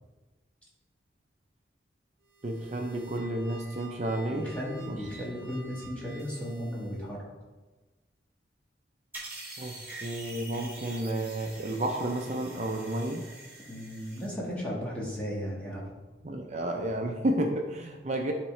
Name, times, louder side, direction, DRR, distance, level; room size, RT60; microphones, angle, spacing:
sound 1, 2.2-7.1, equal, 55° right, 0.9 m, -50 dB
voice 1, 2.4-4.6 4.9-5.0 9.6-9.7 10.0-13.2 16.2-18.3, right 1 dB, 40° right, 2 dB, 0.5 m, -31 dB
voice 2, 4.3-7.2 13.7-15.8, equal, 5° left, -6 dB, 1.6 m, -35 dB
sound 2, 9.1-14.3, right 2 dB, 10° right, 1.4 m, -45 dB
11.0 x 3.7 x 3.2 m, 1.2 s
head